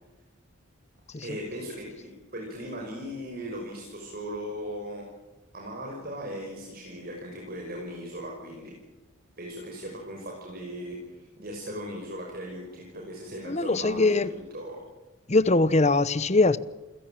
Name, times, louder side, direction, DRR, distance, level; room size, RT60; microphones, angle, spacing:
voice 1, 1.2-5.1 5.5-8.8 9.4-14.3 14.5-14.8, equal, 45° right, 5.7 m, -38 dB
voice 2, 13.5-14.3 15.3-16.6, left 3 dB, 30° left, 0.9 m, -22 dB
28.5 x 16.0 x 9.0 m
head